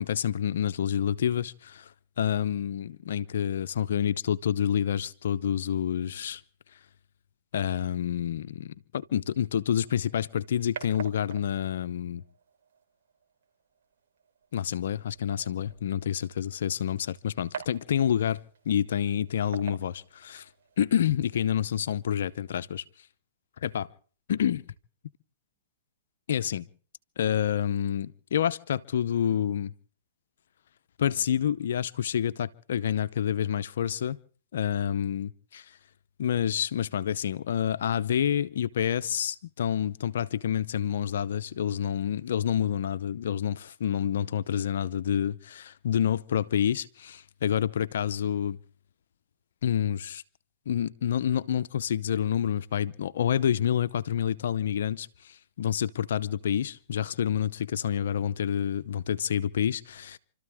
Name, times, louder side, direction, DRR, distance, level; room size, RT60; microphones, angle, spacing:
voice 1, 0.0-1.9 2.2-6.4 7.5-12.2 14.5-18.4 18.7-20.5 20.8-22.8 23.6-23.9 24.3-24.6 26.3-26.6 27.2-29.7 31.0-34.2 34.5-35.7 36.2-48.6 49.6-50.2 50.7-60.2, left 9 dB, 75° left, 0.7 m, -28 dB
sound 1, 9.8-20.8, right 7 dB, 70° right, 3.3 m, -47 dB
28.5 x 13.5 x 3.6 m
hypercardioid pair, 125°, 0 cm